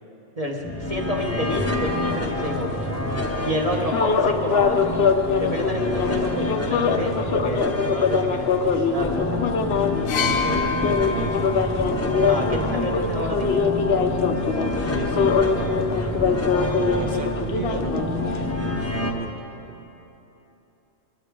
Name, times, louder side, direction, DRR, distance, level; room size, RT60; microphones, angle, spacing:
voice 1, 0.4-2.8 3.4-5.0 5.4-9.5 12.2-13.5, equal, 30° right, -1 dB, 1.2 m, -29 dB
sound 1, 0.6-19.1, left 1 dB, 15° left, 0.6 m, -28 dB
sound 2, 1.8-18.5, left 5 dB, 55° left, 0.8 m, -24 dB
sound 3, 10.1-13.9 14.9-15.1, left 6 dB, 80° left, 1.1 m, -30 dB
voice 2, 10.1-11.4 14.9-15.3 17.0-19.4 19.7-19.8, right 7 dB, 70° right, 6 dB, 0.5 m, -34 dB
21.0 x 12.5 x 3.7 m, 3.0 s
omnidirectional pair, 1.4 m